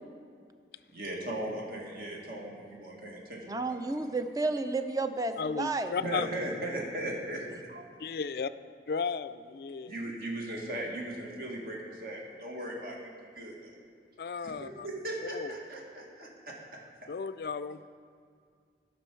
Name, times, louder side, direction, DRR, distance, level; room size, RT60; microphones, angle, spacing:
voice 1, 0.9-4.2 6.0-7.8 9.8-13.7 14.4-16.6, right 1 dB, 55° right, -2 dB, 1.9 m, -38 dB
voice 2, 3.5-5.9, right 3 dB, 20° right, 8 dB, 0.5 m, -31 dB
voice 3, 5.4-6.3 8.0-8.5 8.9-9.9 14.2-14.9 15.3-15.5 17.1-17.8, left 5 dB, 60° left, 13 dB, 0.3 m, -34 dB
15.5 x 6.3 x 4.6 m, 2.2 s
head